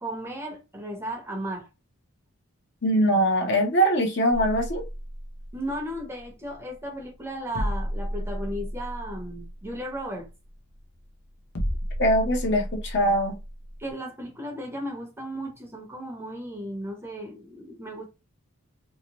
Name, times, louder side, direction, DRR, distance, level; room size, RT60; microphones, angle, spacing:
voice 1, 0.0-1.7 5.5-10.3 13.8-18.1, equal, 10° right, 0.8 m, -35 dB
voice 2, 2.8-4.8 12.0-13.4, equal, 50° left, 0.9 m, -22 dB
sound 1, 4.3-13.9, equal, 75° left, 0.8 m, -34 dB
3.0 x 2.9 x 2.9 m
head